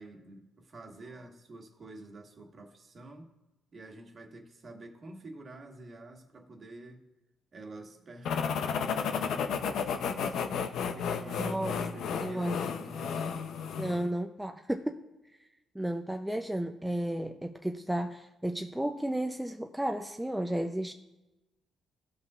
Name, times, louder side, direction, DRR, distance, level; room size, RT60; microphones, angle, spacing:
voice 1, 0.0-3.3 3.7-7.0 7.5-10.6 10.9-13.3, right 2 dB, 45° right, 2 dB, 1.3 m, -48 dB
sound 1, 8.2-14.1, left 6 dB, 75° left, 0.5 m, -32 dB
voice 2, 11.4-11.8 12.2-12.6 13.7-15.0 15.7-20.9, right 1 dB, 5° right, 4 dB, 0.4 m, -33 dB
15.5 x 5.4 x 2.4 m, 1.0 s
cardioid pair, 90°, 0 cm